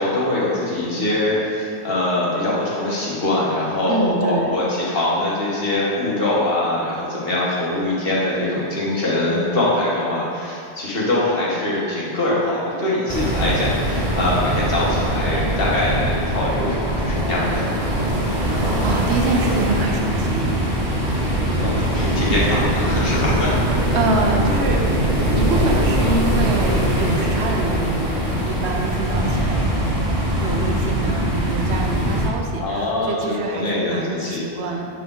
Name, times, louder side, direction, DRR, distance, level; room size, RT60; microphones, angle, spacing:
voice 1, 0.0-17.7 21.6-23.5 32.6-34.4, left 1 dB, 60° left, -7 dB, 1.6 m, -23 dB
voice 2, 3.9-4.5 18.3-20.6 23.9-24.9 25.3-34.9, right 3 dB, 75° right, 2 dB, 1.0 m, -26 dB
sound 1, 13.1-32.3, right 1 dB, 35° right, 0.8 m, -21 dB
7.3 x 4.2 x 3.8 m, 2.4 s
omnidirectional pair, 1.1 m